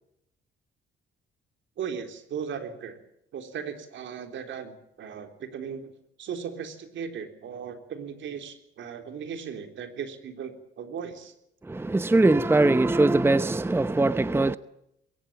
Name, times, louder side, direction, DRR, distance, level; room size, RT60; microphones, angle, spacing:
voice 1, 1.8-3.0 3.3-5.9 6.2-11.3, right 7 dB, 70° right, 3.7 m, -37 dB
voice 2, 11.6-14.6, right 2 dB, 10° right, 0.8 m, -21 dB
21.5 x 18.5 x 9.0 m
cardioid pair, 90°, 20 cm